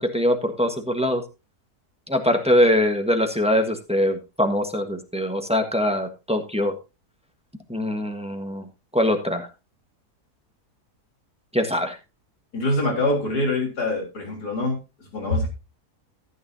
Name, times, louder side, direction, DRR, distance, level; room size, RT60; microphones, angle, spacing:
voice 1, 0.0-1.2 2.1-6.7 7.7-8.7 8.9-9.5 11.5-12.0, left 1 dB, 5° right, 5 dB, 1.2 m, -22 dB
voice 2, 12.5-14.8 15.1-15.5, left 2 dB, 85° left, 1 dB, 4.1 m, -24 dB
14.5 x 9.4 x 2.8 m, 0.28 s
omnidirectional pair, 1.7 m